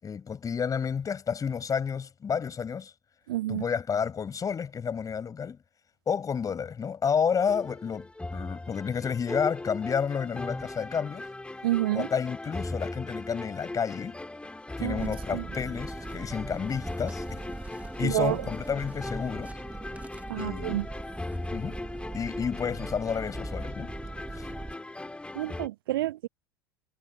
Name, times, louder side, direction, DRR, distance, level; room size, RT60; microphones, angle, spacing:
voice 1, 0.0-2.9 3.5-5.6 6.1-11.3 11.9-14.2 14.8-17.4 18.0-19.6 20.4-20.8 21.5-21.8 22.1-23.9 24.3-24.5, left 7 dB, 30° left, 7.1 m, -30 dB
voice 2, 3.3-3.6 11.6-12.1 14.8-15.4 18.0-18.4 20.3-20.9 25.4-26.3, right 15 dB, 70° right, 0.4 m, -29 dB
sound 1, 7.5-25.7, left 2 dB, 10° left, 4.1 m, -39 dB
sound 2, 15.0-24.7, right 3 dB, 10° right, 1.6 m, -41 dB
figure-of-eight pair, 70°, 12 cm